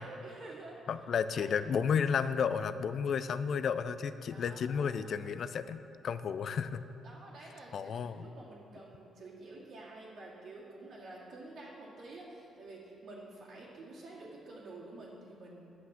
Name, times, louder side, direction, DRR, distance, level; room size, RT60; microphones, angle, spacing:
voice 1, 0.0-0.8 1.4-1.6 4.3-5.3 7.0-15.7, right 2 dB, 65° right, -8 dB, 2.1 m, -49 dB
voice 2, 0.9-6.8 7.7-8.3, left 6 dB, 60° left, 13 dB, 0.4 m, -32 dB
9.7 x 5.8 x 7.3 m, 2.8 s
cardioid pair, 90°, 0 cm